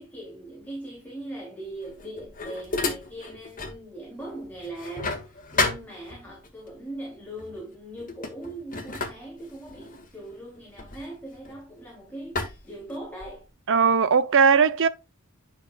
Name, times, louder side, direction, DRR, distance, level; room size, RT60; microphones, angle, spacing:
voice 1, 0.0-13.5, right 1 dB, 10° left, 3.2 m, -40 dB
sound 1, 1.8-3.8 4.2-6.5 7.4-7.6 8.0-11.8 12.3-13.5, left 3 dB, 40° left, 1.9 m, -32 dB
voice 2, 13.7-14.9, right 6 dB, 60° right, 0.7 m, -19 dB
10.5 x 6.2 x 2.4 m
head